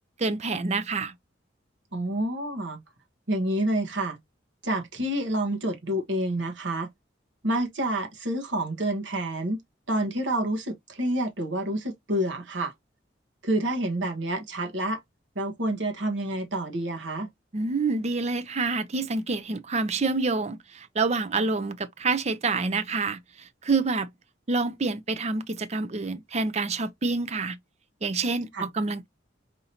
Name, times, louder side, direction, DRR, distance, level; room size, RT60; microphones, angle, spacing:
voice 1, 0.2-1.1 17.5-23.2 23.6-24.1 24.5-27.6 28.0-29.1, right 3 dB, 35° right, 0.5 m, -27 dB
voice 2, 1.9-2.8 3.3-4.2 4.6-6.9 7.4-9.6 9.9-12.7 13.4-15.0 15.3-17.3 28.5-28.7, right 1 dB, 80° right, 1.2 m, -28 dB
5.0 x 2.7 x 2.8 m
head